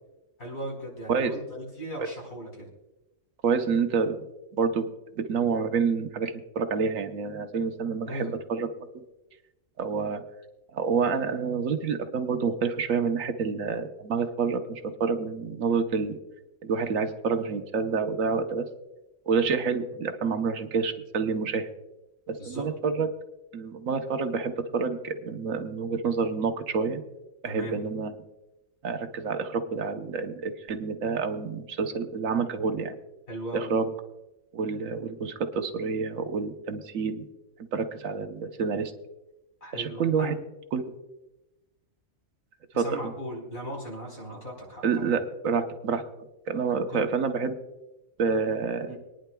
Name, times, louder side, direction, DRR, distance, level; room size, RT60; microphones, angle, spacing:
voice 1, 0.4-2.7 8.1-8.3 22.4-22.6 27.4-27.8 33.3-33.7 39.6-40.4 42.7-45.1 46.9-47.0 48.9-49.0, equal, 50° left, -2 dB, 4.8 m, -37 dB
voice 2, 3.4-4.3 4.5-4.9 5.2-8.7 9.8-10.2 10.7-16.2 16.6-18.6 19.3-21.7 22.3-23.1 23.5-27.0 27.4-28.2 28.8-33.0 33.5-33.9 34.5-37.3 37.6-38.9 39.7-40.4 40.7-40.8 42.7-43.1 44.8-46.1 46.5-47.6 48.2-49.0, right 5 dB, 80° right, 7 dB, 1.3 m, -28 dB
25.5 x 10.0 x 2.3 m, 1.0 s
omnidirectional pair, 1.4 m